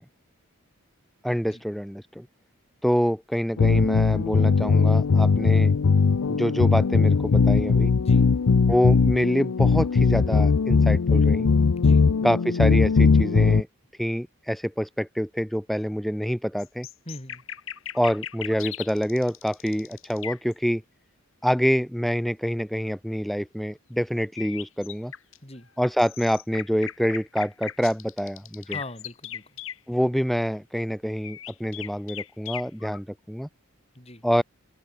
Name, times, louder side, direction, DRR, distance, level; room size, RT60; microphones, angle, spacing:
voice 1, 1.2-2.2 2.8-5.7 6.3-7.9 8.7-11.5 12.2-13.7 14.0-16.9 17.9-20.8 21.4-25.1 25.8-28.8 29.9-33.5 34.2-34.4, equal, ahead, 3.5 m, -26 dB
sound 1, 3.6-13.6, left 4 dB, 85° left, 0.6 m, -19 dB
voice 2, 8.0-8.3 11.8-12.1 17.1-17.4 25.4-25.7 28.7-29.6 33.9-34.2, left 1 dB, 30° left, 5.6 m, -41 dB
sound 2, 16.6-20.5 24.4-25.4 25.8-29.8 31.2-33.0, left 10 dB, 65° left, 7.0 m, -37 dB
head